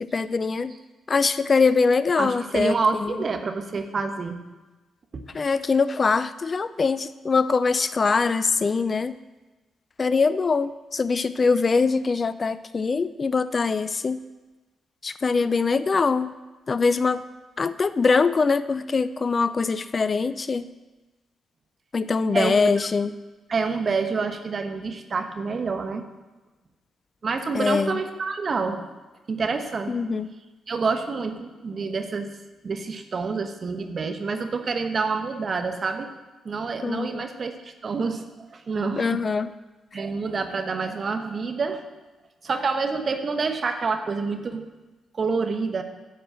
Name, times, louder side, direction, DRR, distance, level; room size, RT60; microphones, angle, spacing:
voice 1, 0.1-0.7 1.1-2.8 3.0-3.2 5.3-9.2 10.0-14.2 15.0-16.3 16.7-17.2 17.6-20.7 21.9-23.1 27.5-28.0 29.9-30.3 36.8-37.2 39.0-39.5, left 4 dB, 45° left, 14 dB, 0.4 m, -23 dB
voice 2, 2.2-4.4 5.1-5.2 22.3-22.6 23.5-26.0 27.2-28.9 29.3-29.9 30.7-32.4 32.6-36.1 36.4-39.2 39.9-41.9 42.4-44.7 45.1-45.8, right 4 dB, 50° right, 6 dB, 1.1 m, -27 dB
11.0 x 4.9 x 7.6 m, 1.2 s
hypercardioid pair, 45°, 0 cm